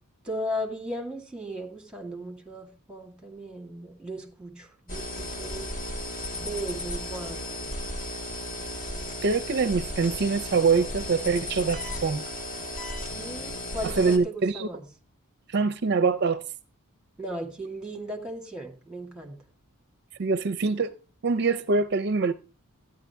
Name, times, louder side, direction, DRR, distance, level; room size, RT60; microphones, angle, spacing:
voice 1, 0.2-5.7 6.4-7.7 13.0-14.8 17.2-19.4, equal, 5° right, 2.1 m, -36 dB
sound 1, 4.9-14.2, left 1 dB, 40° left, 2.2 m, -35 dB
voice 2, 9.2-12.2 14.0-14.7 15.5-16.4 20.2-20.9 21.2-22.3, right 4 dB, 50° right, 0.5 m, -24 dB
13.5 x 9.7 x 3.5 m
head